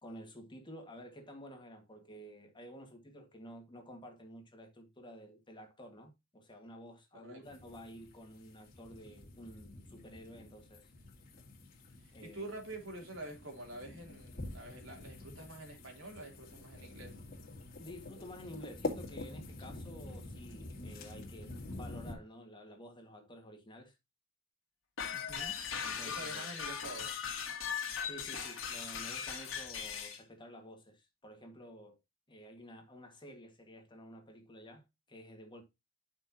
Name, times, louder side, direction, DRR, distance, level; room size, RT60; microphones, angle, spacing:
voice 1, 0.0-10.9 12.1-12.4 17.8-23.9 25.8-26.5 28.0-32.0 32.3-35.6, equal, 25° left, 1.8 m, -51 dB
sound 1, 7.4-22.1, left 2 dB, 50° left, 2.1 m, -47 dB
voice 2, 12.0-17.2 25.1-25.6 26.0-27.1, right 2 dB, 75° right, 3.2 m, -47 dB
sound 2, 25.0-30.2, left 7 dB, 70° left, 2.2 m, -39 dB
9.5 x 6.1 x 2.8 m
head